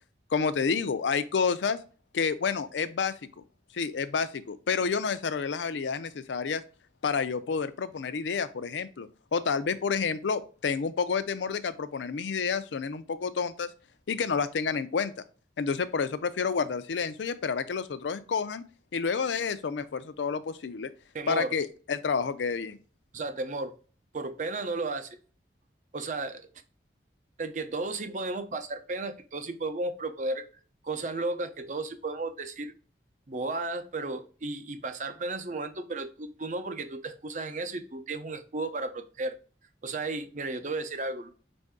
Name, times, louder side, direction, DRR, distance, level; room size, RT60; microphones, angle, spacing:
voice 1, 0.3-1.8 2.1-3.4 3.7-6.6 7.0-13.7 14.1-15.1 15.6-18.6 18.9-20.9 21.3-22.8, left 5 dB, 90° left, 13 dB, 0.5 m, -29 dB
voice 2, 21.1-21.5 23.1-23.7 24.1-25.1 25.9-26.5 27.4-30.5 30.8-32.7 33.3-39.4 39.8-41.3, right 3 dB, 45° right, 7 dB, 0.6 m, -34 dB
5.3 x 2.6 x 3.5 m, 0.38 s
head